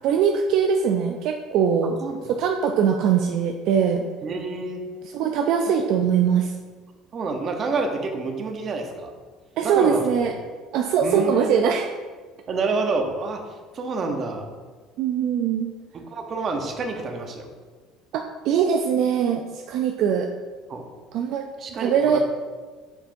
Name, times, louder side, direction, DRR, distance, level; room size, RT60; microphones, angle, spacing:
voice 1, 0.0-2.0 2.3-4.1 5.0-6.5 9.6-10.3 10.7-11.9 15.0-15.7 18.1-20.3 21.1-21.5 21.8-22.2, right 7 dB, 65° right, 4 dB, 0.4 m, -22 dB
voice 2, 4.2-4.8 7.1-9.1 9.6-10.0 11.0-11.6 12.5-13.4 13.7-14.5 15.9-17.5 20.7-20.9 21.6-22.2, right 3 dB, 35° right, 4 dB, 0.9 m, -28 dB
7.3 x 5.2 x 2.7 m, 1.4 s
cardioid pair, 125°, 0 cm